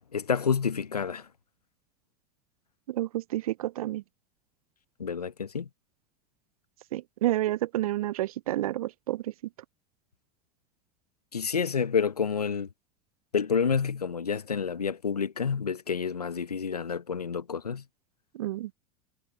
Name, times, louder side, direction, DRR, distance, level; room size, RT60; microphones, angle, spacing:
voice 1, 0.1-1.2 5.0-5.7 11.3-12.7 13.3-17.8, left 6 dB, 85° left, 1.2 m, -29 dB
voice 2, 2.9-4.0 6.9-9.2 18.3-18.7, right 14 dB, 70° right, 0.7 m, -29 dB
figure-of-eight pair, 80°, 19 cm